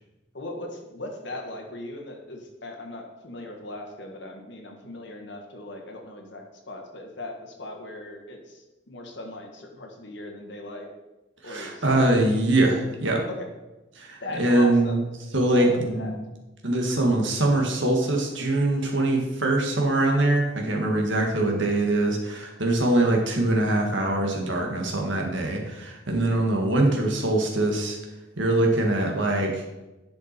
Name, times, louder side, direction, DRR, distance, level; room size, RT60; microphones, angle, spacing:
voice 1, 0.3-10.9 11.4-12.4 13.4-13.5 14.2-15.1 15.5-16.2, left 2 dB, 60° left, 2 dB, 1.6 m, -38 dB
voice 2, 11.4-13.3 14.0-15.0 15.3-16.2 16.6-28.0 28.4-29.6, right 2 dB, 65° right, 1 dB, 1.7 m, -23 dB
10.5 x 5.8 x 4.4 m, 1.1 s
head